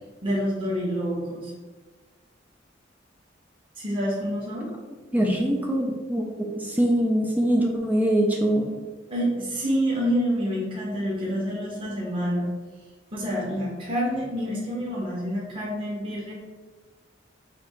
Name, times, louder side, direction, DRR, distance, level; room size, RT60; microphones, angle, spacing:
voice 1, 0.2-1.5 3.8-4.7 9.1-12.5 13.1-16.3, equal, 30° right, -7 dB, 1.2 m, -27 dB
voice 2, 5.1-8.7, right 1 dB, 10° right, -1 dB, 0.4 m, -23 dB
4.2 x 2.8 x 4.3 m, 1.4 s
head